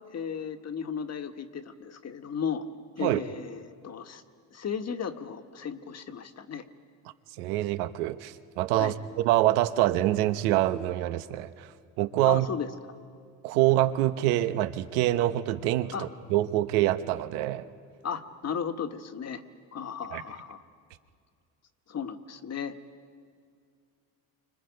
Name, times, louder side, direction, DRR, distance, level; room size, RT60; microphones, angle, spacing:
voice 1, 0.1-2.6 3.0-4.2 4.5-6.6 8.8-9.0 12.2-12.7 15.9-16.1 18.0-19.4 19.7-20.6 21.9-22.8, left 7 dB, 35° left, 8 dB, 1.7 m, -35 dB
voice 2, 7.4-11.7 12.0-12.5 13.4-17.7 20.1-20.2, right 14 dB, 85° right, 11 dB, 1.1 m, -25 dB
29.0 x 25.5 x 5.3 m, 2.3 s
supercardioid pair, 85°, 43 cm